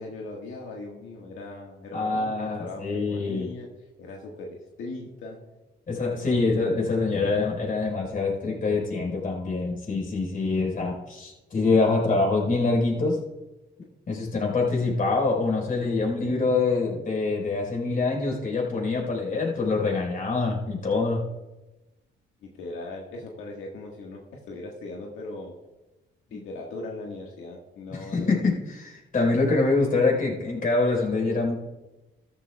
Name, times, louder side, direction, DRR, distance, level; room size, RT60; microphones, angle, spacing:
voice 1, 0.0-3.7 4.0-5.4 6.1-6.4 22.4-25.5 26.3-28.5, left 2 dB, 85° left, -1 dB, 1.7 m, -39 dB
voice 2, 1.9-3.5 5.9-13.2 14.1-21.2 26.3-26.4 27.9-31.5, left 3 dB, 45° left, -1 dB, 4.6 m, -25 dB
14.5 x 13.5 x 2.4 m, 1.1 s
cardioid pair, 90°, 20 cm